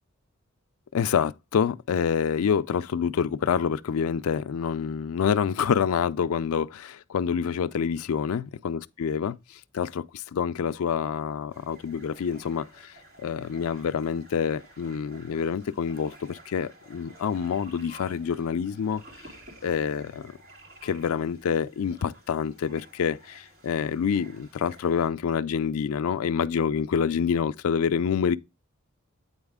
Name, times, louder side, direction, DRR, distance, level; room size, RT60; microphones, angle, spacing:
voice 1, 0.9-12.6 13.2-19.0 19.6-20.3 20.8-28.4, left 7 dB, 85° left, 0.4 m, -27 dB
sound 1, 11.5-25.1, right 1 dB, 45° right, 2.9 m, -52 dB
8.8 x 4.0 x 3.5 m
head